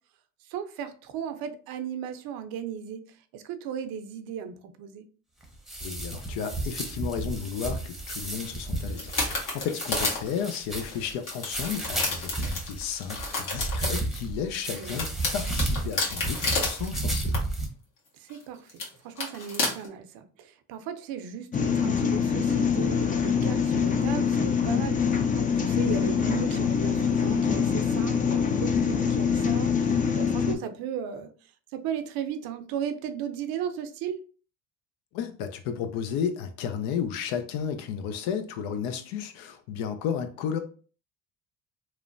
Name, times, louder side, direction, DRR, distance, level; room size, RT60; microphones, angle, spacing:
voice 1, 0.5-3.0 3.3-5.1 14.7-15.0 18.2-31.3 31.7-34.2, right 8 dB, 75° right, 0.5 m, -36 dB
sound 1, 5.4-17.7, right 2 dB, ahead, 0.7 m, -33 dB
voice 2, 5.8-17.3 35.1-40.6, left 7 dB, 85° left, 0.6 m, -33 dB
sound 2, 8.9-14.0 14.5-16.9 17.2-17.4 18.3-18.4 18.7-18.9 19.2-19.9, left 3 dB, 60° left, 1.3 m, -31 dB
sound 3, 21.5-30.6, left 6 dB, 25° left, 0.4 m, -24 dB
3.0 x 2.1 x 2.5 m
supercardioid pair, 85°, 36 cm